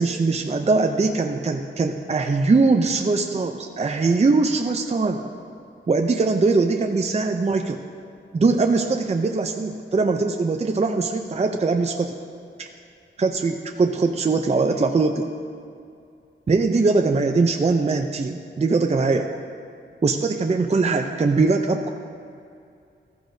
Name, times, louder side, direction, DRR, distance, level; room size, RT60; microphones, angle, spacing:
voice 1, 0.0-5.2 5.9-7.8 8.3-12.1 12.6-12.7 13.2-15.3 16.5-19.3 20.0-21.9, right 3 dB, 30° right, 4 dB, 0.5 m, -21 dB
15.0 x 13.5 x 2.7 m, 2.5 s
wide cardioid pair, 120°, 21 cm